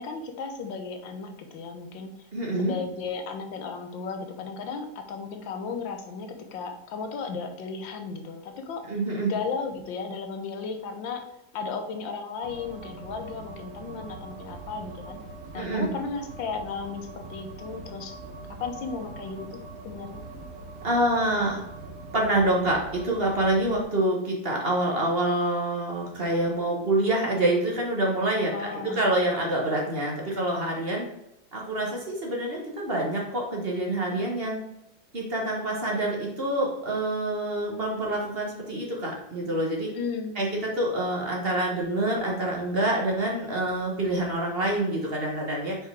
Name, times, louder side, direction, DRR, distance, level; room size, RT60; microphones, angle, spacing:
voice 1, 0.0-2.1 2.6-8.9 9.3-11.2 11.5-15.2 15.5-18.2 18.6-19.5 19.8-20.2 28.5-29.0 39.9-40.3, left 5 dB, 90° left, 6 dB, 1.6 m, -35 dB
voice 2, 2.3-2.7 8.8-9.3 15.5-15.9 20.8-21.6 22.1-31.1 31.5-34.6 35.1-39.9 40.3-45.8, right 1 dB, 35° right, -1 dB, 1.4 m, -26 dB
sound 1, 12.4-23.8, right 3 dB, 55° right, 0.8 m, -42 dB
6.1 x 4.9 x 3.4 m, 0.85 s
omnidirectional pair, 2.0 m